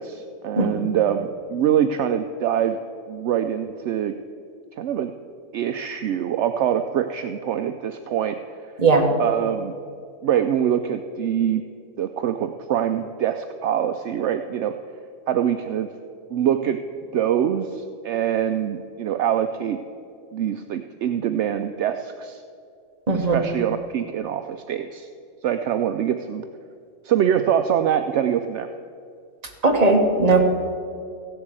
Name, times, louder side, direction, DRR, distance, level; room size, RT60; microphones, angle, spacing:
voice 1, 0.0-2.8 3.1-4.1 4.8-5.1 5.5-8.4 9.2-9.7 10.2-11.6 12.0-14.7 15.3-15.9 16.3-16.8 17.1-19.8 20.3-22.4 23.1-25.1 25.4-26.4 27.0-28.7, right 9 dB, 65° right, 8 dB, 0.7 m, -24 dB
voice 2, 0.6-0.9 8.8-9.1 23.1-23.4 29.6-30.5, right 3 dB, 25° right, 2 dB, 1.4 m, -18 dB
15.0 x 8.0 x 7.6 m, 2.4 s
omnidirectional pair, 1.6 m